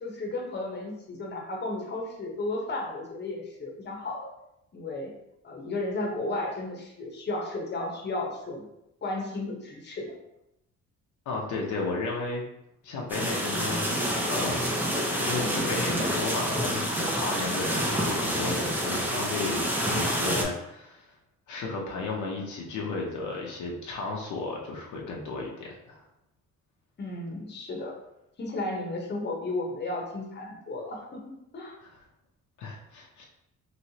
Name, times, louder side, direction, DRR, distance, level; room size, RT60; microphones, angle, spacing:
voice 1, 0.0-4.3 4.7-5.1 5.4-8.6 9.0-10.1 17.3-17.5 27.0-28.0 28.4-31.8, left 2 dB, 35° left, 0 dB, 0.9 m, -34 dB
voice 2, 11.3-12.4 12.8-14.7 15.1-21.1 21.5-26.0 31.8-32.0 32.6-33.3, left 3 dB, 75° left, -2 dB, 0.7 m, -34 dB
sound 1, 13.1-20.4, equal, 5° right, 0.6 m, -28 dB
3.0 x 3.0 x 2.8 m, 0.84 s
cardioid pair, 90°, 30 cm